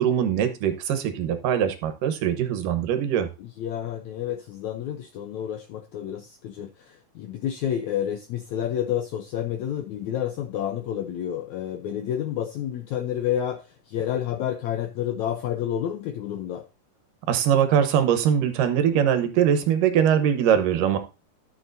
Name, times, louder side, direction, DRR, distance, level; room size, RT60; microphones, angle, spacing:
voice 1, 0.0-3.3 17.3-21.0, right 9 dB, 75° right, 2.6 m, -22 dB
voice 2, 3.4-16.6, left 10 dB, 75° left, 1.7 m, -29 dB
12.5 x 6.9 x 2.6 m
omnidirectional pair, 4.1 m